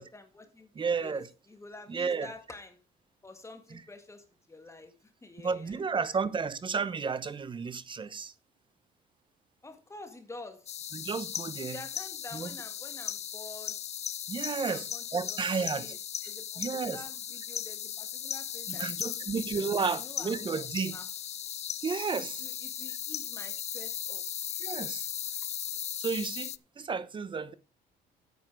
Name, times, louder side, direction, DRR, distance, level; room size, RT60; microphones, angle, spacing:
voice 1, 0.0-1.2 1.5-2.8 3.2-6.1 9.6-10.8 11.7-13.8 14.6-19.4 19.8-21.1 22.2-24.2, left 2 dB, 15° left, 1.8 m, -48 dB
voice 2, 0.7-1.3 1.9-2.3 3.7-3.8 5.4-8.3 10.9-11.8 12.3-12.5 14.3-14.8 15.1-15.9 16.6-17.0 18.7-21.0 21.8-22.4 22.9-23.0 24.6-25.1 26.0-27.5, right 5 dB, 30° right, 0.9 m, -32 dB
sound 1, 10.7-26.6, left 10 dB, 40° left, 0.5 m, -37 dB
9.2 x 8.5 x 4.8 m
cardioid pair, 110°, 17 cm